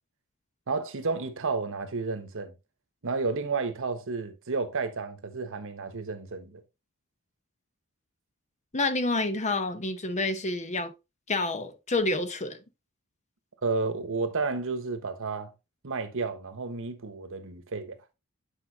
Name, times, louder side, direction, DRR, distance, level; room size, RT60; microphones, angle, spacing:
voice 1, 0.7-2.5 3.0-6.6 13.6-15.5 15.8-17.9, right 4 dB, 60° right, 1.1 m, -31 dB
voice 2, 8.7-10.9 11.3-12.6, left 2 dB, 30° left, 0.8 m, -28 dB
8.5 x 5.4 x 2.8 m
head